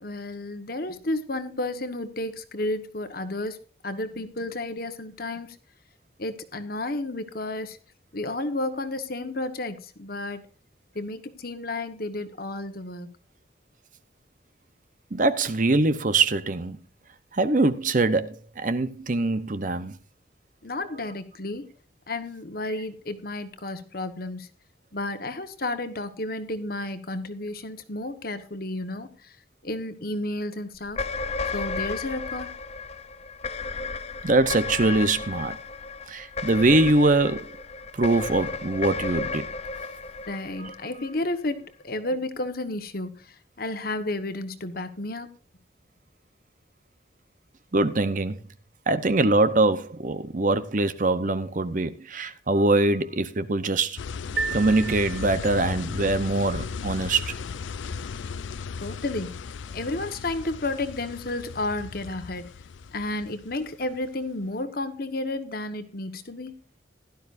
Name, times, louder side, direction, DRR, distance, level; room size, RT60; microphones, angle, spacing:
voice 1, 0.0-5.6 6.2-7.8 8.1-10.5 10.9-13.1 20.6-21.7 22.1-24.5 24.9-29.4 29.6-31.0 31.5-32.5 40.3-45.3 58.8-59.3 59.7-62.5 62.9-66.5, left 2 dB, 50° left, 1.3 m, -32 dB
voice 2, 15.1-16.8 17.3-20.0 34.2-35.6 36.1-37.6 37.9-39.5 40.6-40.7 47.7-48.4 48.9-54.0 54.5-57.3, right 2 dB, 45° right, 0.8 m, -23 dB
sound 1, 30.8-41.3, left 4 dB, 35° left, 0.6 m, -33 dB
sound 2, 54.0-64.1, left 5 dB, 80° left, 0.5 m, -36 dB
sound 3, 54.4-55.8, right 5 dB, 70° right, 0.8 m, -33 dB
16.5 x 12.0 x 2.6 m
head